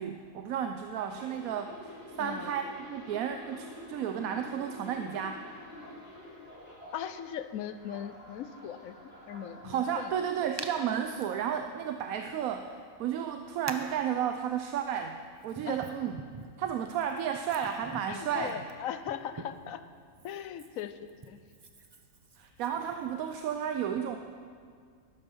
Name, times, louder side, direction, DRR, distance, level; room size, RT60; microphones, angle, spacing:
voice 1, 0.0-2.6 2.9-5.4 9.6-15.2 15.4-16.2 16.6-18.6 22.4-24.2, right 8 dB, 90° right, 6 dB, 1.1 m, -33 dB
sound 1, 0.8-7.3 7.7-10.1 10.8-11.0, left 1 dB, 5° right, 4.3 m, -48 dB
voice 2, 2.2-2.5 6.9-10.1 15.7-15.8 18.1-19.8 20.2-21.0 21.3-21.4, left 9 dB, 85° left, 11 dB, 1.1 m, -39 dB
Hands, 10.6-10.7 11.2-11.3 12.5-12.6 13.7-14.0 14.9-19.7 20.1-23.4, right 3 dB, 30° right, 0.4 m, -46 dB
12.5 x 12.0 x 5.5 m, 2.1 s
omnidirectional pair, 1.4 m